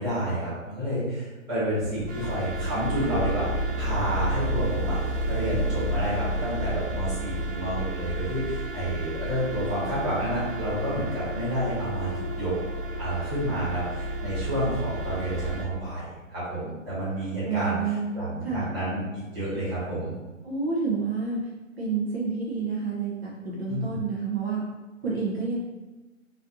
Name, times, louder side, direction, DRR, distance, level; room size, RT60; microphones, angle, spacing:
voice 1, 0.0-12.5 13.0-17.8 18.1-19.0 19.3-20.1 23.7-24.0, right 1 dB, 15° right, -11 dB, 1.0 m, -30 dB
sound 1, 1.9-15.6, right 1 dB, 65° right, 1.0 m, -31 dB
voice 2, 17.4-18.2 18.4-18.6 20.4-21.5 21.8-24.6 25.0-25.5, right 5 dB, 50° right, -5 dB, 0.7 m, -29 dB
4.0 x 2.6 x 2.5 m, 1.2 s
hypercardioid pair, 150°, 40 cm